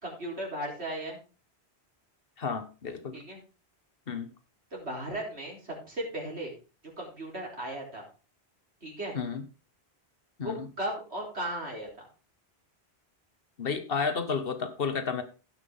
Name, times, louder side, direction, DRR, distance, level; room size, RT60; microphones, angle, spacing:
voice 1, 0.0-1.2 3.1-3.4 4.7-6.5 7.0-8.0 8.8-9.2 10.4-12.1, right 1 dB, 85° right, -1 dB, 4.3 m, -36 dB
voice 2, 2.4-3.1 4.1-4.3 9.1-9.4 10.4-10.7 13.6-15.2, left 5 dB, 60° left, 9 dB, 1.5 m, -31 dB
16.5 x 6.0 x 3.7 m, 0.33 s
omnidirectional pair, 1.1 m